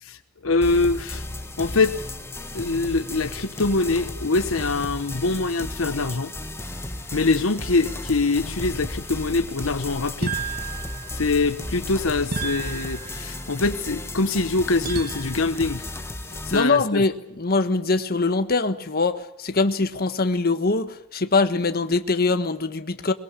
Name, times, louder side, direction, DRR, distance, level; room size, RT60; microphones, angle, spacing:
voice 1, 0.0-1.2 1.6-2.0 2.5-6.3 7.1-10.4 11.2-15.8 16.5-17.0, left 3 dB, 70° left, 1.1 m, -24 dB
sound 1, 0.6-16.6, left 1 dB, 10° left, 1.6 m, -35 dB
sound 2, 0.8-15.6, equal, 15° right, 4.8 m, -47 dB
sound 3, 10.2-11.5 12.3-13.5 14.8-15.6, right 4 dB, 50° right, 2.0 m, -32 dB
voice 2, 16.5-23.1, left 3 dB, 45° left, 1.4 m, -23 dB
22.5 x 22.0 x 8.6 m
head